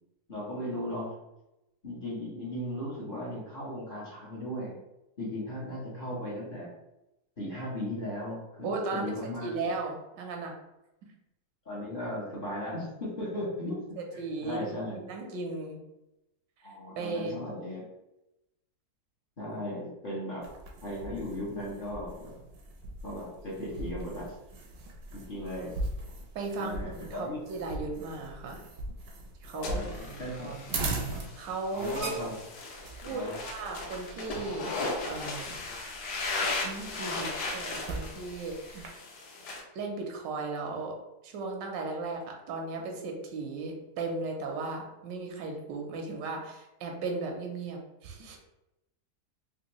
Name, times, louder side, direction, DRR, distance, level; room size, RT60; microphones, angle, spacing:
voice 1, 0.3-1.1 1.8-4.8 5.2-6.7 7.4-9.5 11.6-13.8 14.1-15.0 16.6-17.8 19.4-20.4 20.8-22.5 23.0-24.3 25.1-25.8 26.6-27.4 29.5-30.5 31.7-32.3 33.0-33.4, left 1 dB, 40° left, -8 dB, 0.9 m, -37 dB
voice 2, 8.6-9.1 9.4-10.5 14.0-15.8 17.0-17.6 26.3-28.6 29.4-30.8 31.4-32.2 33.0-34.8 35.0-35.6 36.6-39.0 39.7-41.0 41.2-48.4, right 3 dB, 80° right, 2 dB, 1.3 m, -36 dB
sound 1, 20.4-38.9, right 2 dB, 65° right, 0.9 m, -40 dB
sound 2, 29.6-39.6, left 3 dB, 70° left, 1.3 m, -37 dB
3.5 x 2.8 x 3.0 m, 0.93 s
omnidirectional pair, 2.0 m